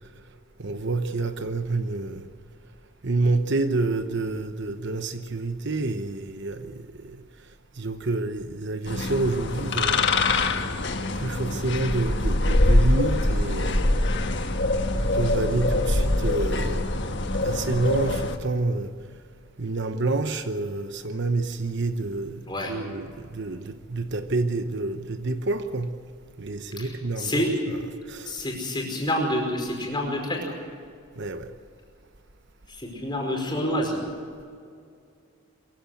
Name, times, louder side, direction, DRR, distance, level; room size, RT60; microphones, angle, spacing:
voice 1, 0.6-2.3 3.0-7.2 7.8-10.1 11.1-13.8 14.9-16.8 17.4-18.9 19.6-26.0 26.4-28.4 31.2-31.5, right 3 dB, 55° right, 1.0 m, -28 dB
sound 1, 8.9-18.4, left 2 dB, 55° left, 1.4 m, -24 dB
voice 2, 26.8-27.5 28.3-30.5 32.7-34.0, left 1 dB, 20° left, 5.1 m, -28 dB
23.0 x 15.5 x 8.0 m
head